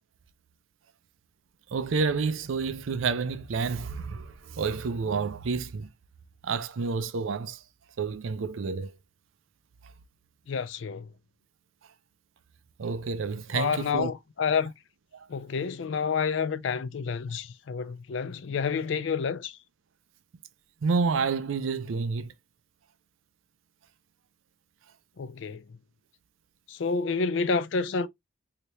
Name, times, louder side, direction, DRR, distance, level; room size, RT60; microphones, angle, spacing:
voice 1, 1.7-5.9 6.4-7.6 8.0-8.9 12.8-14.1 15.1-15.3 20.8-22.3, right 5 dB, 85° right, 0.5 m, -29 dB
voice 2, 10.5-11.1 13.5-14.7 15.3-19.6 25.2-25.6 26.7-28.1, left 5 dB, 65° left, 0.4 m, -29 dB
3.3 x 2.8 x 2.9 m
head